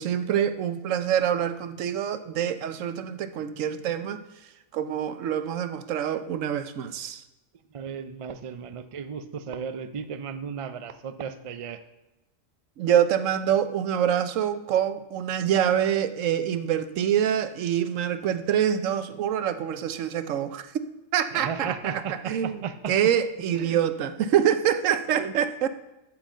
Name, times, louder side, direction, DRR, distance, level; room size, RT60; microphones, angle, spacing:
voice 1, 0.0-4.2 4.7-7.2 12.8-20.7 21.1-22.6 22.9-25.7, right 9 dB, 80° right, 11 dB, 1.0 m, -25 dB
voice 2, 7.7-11.8 21.3-22.9 23.5-23.8 25.1-25.5, right 6 dB, 60° right, 10 dB, 0.3 m, -35 dB
9.0 x 4.6 x 7.3 m, 0.98 s
omnidirectional pair, 1.3 m